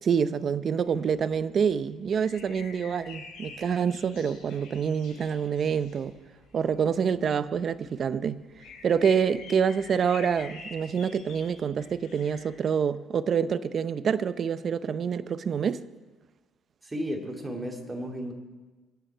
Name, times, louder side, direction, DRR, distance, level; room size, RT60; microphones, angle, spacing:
voice 1, 0.0-6.1 6.5-8.4 8.8-15.8, right 7 dB, 45° right, 0.6 m, -27 dB
sound 1, 0.7-12.5, left 4 dB, 90° left, 4.9 m, -48 dB
voice 2, 16.8-18.3, equal, 15° right, 2.3 m, -33 dB
24.0 x 10.0 x 4.6 m
cardioid pair, 120°, 0 cm